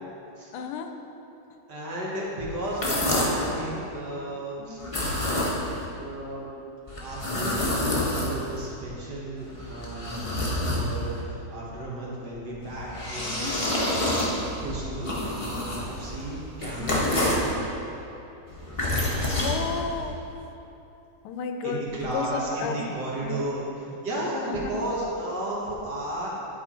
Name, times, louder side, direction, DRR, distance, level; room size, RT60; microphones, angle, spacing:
voice 1, 0.5-0.9 4.6-4.9 10.2-10.4 13.2-13.6 16.8-17.2 19.4-20.2 21.2-22.8 23.2-23.3 24.4-24.8, left 5 dB, 85° left, 6 dB, 1.6 m, -33 dB
voice 2, 1.7-4.8 6.0-6.5 7.0-7.7 8.0-10.0 10.6-13.4 13.9-14.2 14.6-17.4 21.6-26.3, right 1 dB, 50° right, -5 dB, 1.9 m, -33 dB
sound 1, 2.6-3.5 4.8-5.9 6.9-8.7 9.4-11.2 12.6-17.5 18.5-20.1, left 1 dB, 25° left, 0.8 m, -28 dB
11.0 x 4.8 x 4.3 m, 2.9 s
omnidirectional pair, 2.4 m